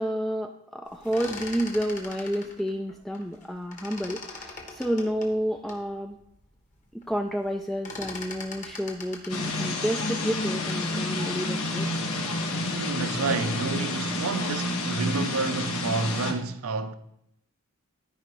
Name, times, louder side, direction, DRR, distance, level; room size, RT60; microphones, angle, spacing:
voice 1, 0.0-6.2 6.9-11.9, equal, ahead, 0.3 m, -30 dB
sound 1, 0.9-3.4 3.7-5.8 6.4-6.5 6.7-7.1 7.4-10.9, left 3 dB, 35° left, 1.3 m, -42 dB
sound 2, 9.3-16.3, left 2 dB, 80° left, 1.4 m, -29 dB
voice 2, 12.7-16.9, right 3 dB, 80° right, 0.6 m, -29 dB
13.5 x 5.0 x 3.1 m
head